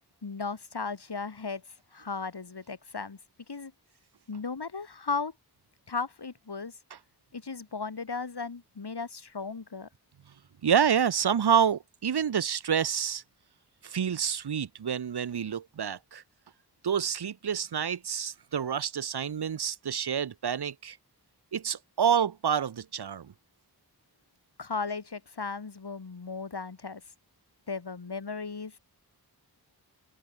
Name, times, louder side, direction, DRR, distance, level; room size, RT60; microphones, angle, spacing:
voice 1, 0.2-1.6 1.9-3.2 3.5-3.7 4.3-5.3 5.9-6.8 7.3-9.9 24.6-27.0 27.7-28.8, left 4 dB, 75° left, 5.4 m, -36 dB
voice 2, 10.6-13.2 13.8-16.2 16.8-21.0 21.5-23.3, right 8 dB, 75° right, 0.9 m, -28 dB
wide cardioid pair, 80°, 40 cm